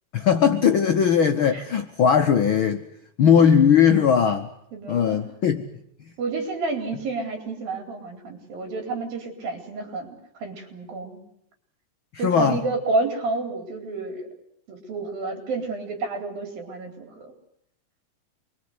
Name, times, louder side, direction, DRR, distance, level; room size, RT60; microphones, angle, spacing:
voice 1, 0.1-2.8 3.2-4.5 4.9-5.6 12.2-12.6, left 7 dB, 75° left, 7 dB, 1.1 m, -19 dB
voice 2, 4.7-5.3 6.2-11.2 12.2-14.3 14.7-17.3, right 3 dB, 85° right, 4 dB, 6.0 m, -30 dB
27.0 x 22.5 x 8.2 m, 0.73 s
omnidirectional pair, 4.0 m